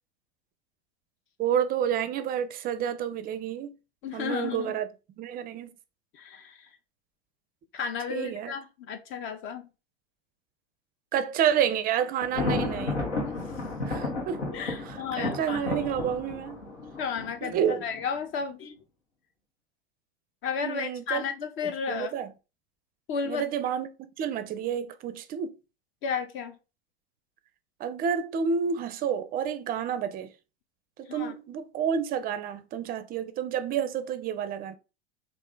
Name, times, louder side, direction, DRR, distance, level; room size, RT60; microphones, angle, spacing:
voice 1, 1.4-3.7 4.1-4.9 5.2-5.7 8.1-8.5 11.1-13.0 13.8-14.4 14.9-16.6 17.4-17.8 20.6-21.2 21.6-22.3 23.2-23.9 24.2-25.5 27.8-30.3 31.0-34.7, right 8 dB, 25° right, 0.4 m, -29 dB
voice 2, 4.0-4.8 6.1-6.7 7.7-9.7 13.2-13.6 14.5-15.6 17.0-18.8 20.4-22.1 23.1-23.5 26.0-26.6 31.1-31.3, left 6 dB, 40° left, 0.5 m, -33 dB
Thunder, 12.2-18.0, left 2 dB, 90° left, 1.2 m, -32 dB
3.2 x 2.5 x 3.6 m
hypercardioid pair, 90°, 33 cm